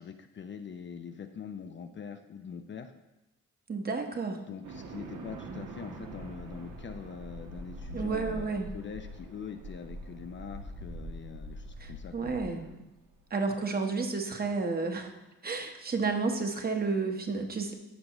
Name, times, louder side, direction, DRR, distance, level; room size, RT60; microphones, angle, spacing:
voice 1, 0.0-2.9 4.5-12.8, left 7 dB, 40° left, 7 dB, 0.5 m, -43 dB
voice 2, 3.7-4.4 7.9-8.7 11.8-12.7 13.3-15.1 15.4-17.7, right 4 dB, 30° right, 4 dB, 1.1 m, -31 dB
sound 1, 4.6-13.1, right 1 dB, 75° right, 1.3 m, -43 dB
13.0 x 5.2 x 3.0 m, 0.97 s
cardioid pair, 90°, 30 cm